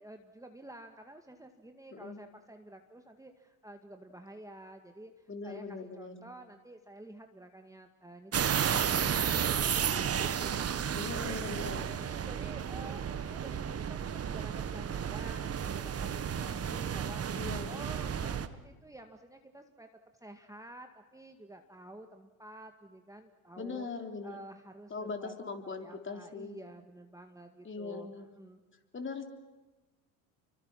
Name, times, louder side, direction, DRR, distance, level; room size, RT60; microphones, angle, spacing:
voice 1, 0.0-10.8 11.1-11.4 11.7-19.9 20.2-23.9 24.2-25.3 25.6-28.6, right 1 dB, 5° right, 5 dB, 2.0 m, -50 dB
voice 2, 5.3-6.2 10.9-12.0 17.4-17.8 23.6-24.4 24.9-26.6 27.6-28.3 28.9-29.2, left 4 dB, 25° left, 5 dB, 3.5 m, -40 dB
sound 1, 8.3-18.5, right 8 dB, 35° right, 1.4 m, -32 dB
28.5 x 24.5 x 6.0 m, 1.2 s
hypercardioid pair, 75°, 43 cm